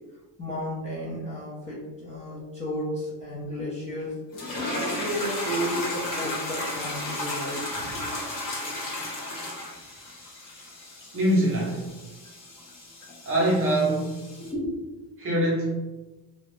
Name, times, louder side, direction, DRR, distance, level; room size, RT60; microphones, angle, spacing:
voice 1, 0.4-4.2 4.5-8.1 10.8-11.0 14.4-14.8, equal, 15° left, 0.5 m, -33 dB
sound 1, 4.3-14.5, left 1 dB, 50° left, 0.9 m, -34 dB
voice 2, 11.1-11.9 13.2-14.3 15.2-15.7, right 1 dB, 30° right, 0.6 m, -24 dB
2.3 x 2.0 x 3.0 m
cardioid pair, 165°, 41 cm